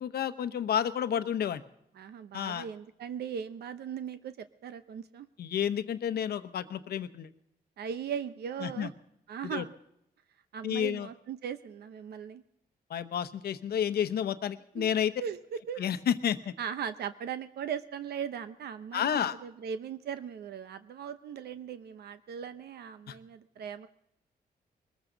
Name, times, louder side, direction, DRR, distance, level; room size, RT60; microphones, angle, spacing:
voice 1, 0.0-1.6 2.3-2.7 5.4-7.3 8.6-8.9 9.4-9.6 10.6-11.1 12.9-15.1 15.8-16.5 18.9-19.4 23.1-23.2, left 9 dB, 75° left, 11 dB, 0.9 m, -30 dB
voice 2, 2.0-5.3 7.8-8.9 9.3-9.7 10.5-12.4 14.7-14.9 15.2-15.4 15.7-15.8 16.6-23.9, right 8 dB, 80° right, 11 dB, 0.8 m, -38 dB
21.5 x 14.5 x 3.9 m, 0.77 s
cardioid pair, 125°, 16 cm